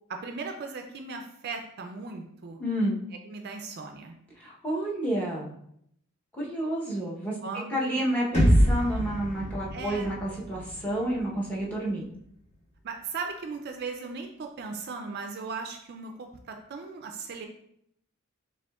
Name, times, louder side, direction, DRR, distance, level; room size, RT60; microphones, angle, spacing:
voice 1, 0.1-2.6 3.3-4.2 7.4-8.0 9.7-10.1 12.8-17.5, right 4 dB, 50° right, 4 dB, 0.4 m, -37 dB
voice 2, 2.6-3.0 4.4-5.5 6.3-7.4 7.7-12.0, right 1 dB, 5° left, -5 dB, 0.9 m, -30 dB
sound 1, 8.3-12.3, equal, 30° left, 1.6 m, -26 dB
5.0 x 3.5 x 2.3 m, 0.72 s
head